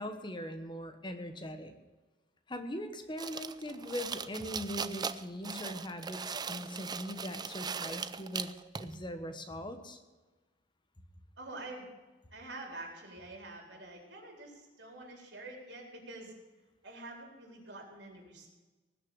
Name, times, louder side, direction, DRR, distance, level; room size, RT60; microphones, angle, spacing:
voice 1, 0.0-1.7 2.5-10.0, equal, 25° left, 8 dB, 1.3 m, -41 dB
sound 1, 3.2-8.9, right 6 dB, 25° right, 0.5 m, -39 dB
voice 2, 11.4-11.9 12.3-16.3 16.8-18.5, right 2 dB, 75° right, 1 dB, 4.3 m, -47 dB
19.5 x 6.6 x 8.8 m, 1.2 s
head